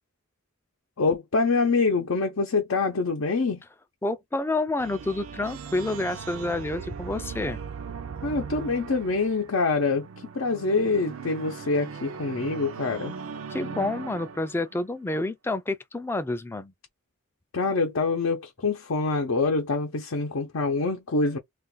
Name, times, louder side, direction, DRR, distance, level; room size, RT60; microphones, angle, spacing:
voice 1, 1.0-3.6 8.2-10.1 10.3-13.1 17.5-21.4, left 3 dB, 80° left, 0.7 m, -25 dB
voice 2, 4.0-7.6 13.5-16.7, left 2 dB, 10° left, 0.3 m, -29 dB
sound 1, 4.8-14.8, right 6 dB, 75° right, 0.4 m, -39 dB
2.4 x 2.3 x 3.8 m
head